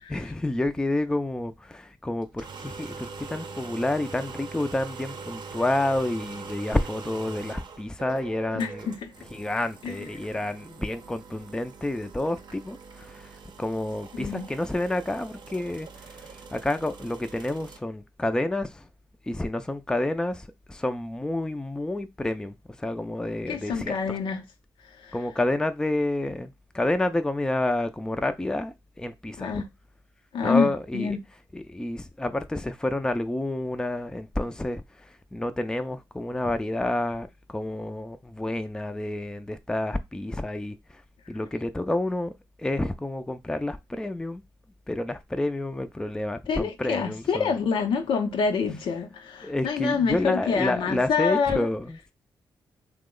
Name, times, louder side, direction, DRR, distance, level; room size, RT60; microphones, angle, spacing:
voice 1, 0.1-8.9 9.3-13.3 13.6-18.9 19.3-24.2 25.1-29.6 30.4-31.2 31.5-41.0 41.3-42.3 42.6-44.4 44.9-47.5 49.4-52.1, left 1 dB, 10° left, 0.4 m, -29 dB
sound 1, 2.2-17.8, right 5 dB, 60° right, 0.6 m, -43 dB
voice 2, 8.5-9.1 9.8-10.0 14.1-14.5 23.5-24.4 25.0-25.2 29.4-29.7 30.3-31.2 46.5-51.7, left 5 dB, 80° left, 0.6 m, -27 dB
3.0 x 2.1 x 3.6 m
cardioid pair, 65°, 8 cm